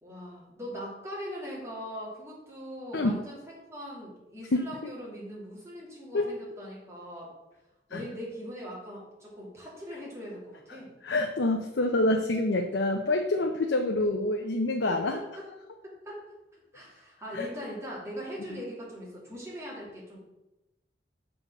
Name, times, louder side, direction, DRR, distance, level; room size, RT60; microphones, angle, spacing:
voice 1, 0.0-7.3 7.9-10.9 14.9-15.4 15.8-16.2 16.7-20.2, equal, 15° right, -6 dB, 2.7 m, -41 dB
voice 2, 11.0-15.2 17.3-17.5, left 2 dB, 80° left, 4 dB, 0.6 m, -26 dB
6.1 x 4.4 x 6.4 m, 0.97 s
head